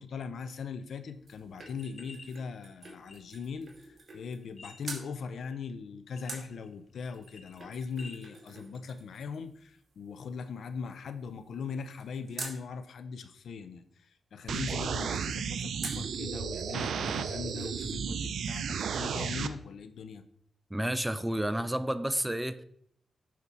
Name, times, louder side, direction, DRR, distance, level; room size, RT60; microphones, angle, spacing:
voice 1, 0.0-20.2, left 5 dB, 75° left, 0.7 m, -40 dB
sound 1, 0.9-4.5 4.8-5.1 6.3-12.6 15.8-16.2 16.6-16.7 16.9-17.9 18.2-18.3, right 3 dB, 50° right, 2.3 m, -47 dB
sound 2, 1.6-2.3 2.8-3.5 4.4-5.2 5.6-5.7 6.2-6.7 7.0-8.2, left 3 dB, 50° left, 1.0 m, -51 dB
sound 3, 14.5-19.5, right 7 dB, 80° right, 0.5 m, -33 dB
voice 2, 20.7-22.6, right 1 dB, 10° right, 0.6 m, -30 dB
8.5 x 5.9 x 4.1 m
cardioid pair, 70°, 0 cm